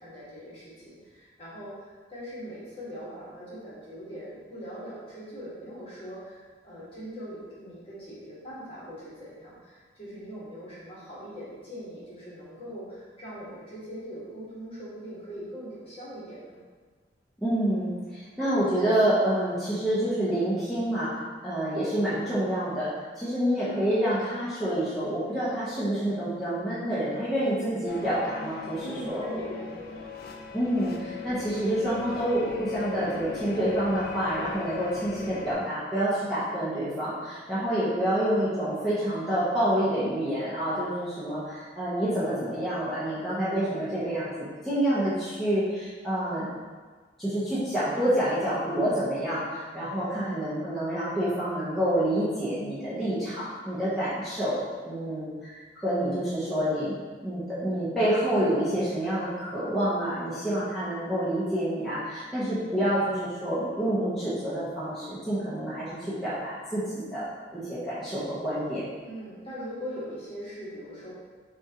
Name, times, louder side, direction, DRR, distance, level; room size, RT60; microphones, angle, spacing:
voice 1, 0.0-16.6 28.8-30.0 50.0-50.5 69.0-71.1, equal, 30° left, -9 dB, 1.5 m, -41 dB
voice 2, 17.4-21.1 21.4-22.9 23.2-29.3 30.5-44.3 44.6-46.5 47.2-54.6 54.8-56.9 57.2-67.2 67.5-68.8, right 1 dB, ahead, -13 dB, 0.9 m, -28 dB
sound 1, 27.9-35.5, left 6 dB, 55° left, 0.5 m, -39 dB
5.9 x 2.4 x 2.9 m, 1.5 s
head